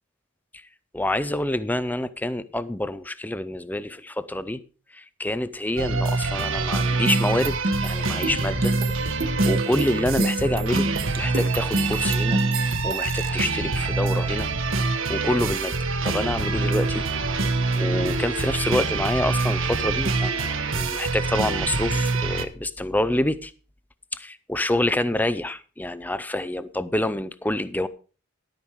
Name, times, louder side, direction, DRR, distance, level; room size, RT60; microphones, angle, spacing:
voice 1, 0.9-4.6 4.9-8.7 9.2-10.9 11.2-12.4 12.8-14.5 14.9-15.7 16.0-23.5 24.1-27.9, left 1 dB, 10° left, 0.5 m, -27 dB
sound 1, 5.8-22.5, right 3 dB, 65° right, 1.2 m, -25 dB
sound 2, 7.1-13.3, right 1 dB, 45° right, 1.2 m, -27 dB
11.5 x 8.9 x 4.7 m
head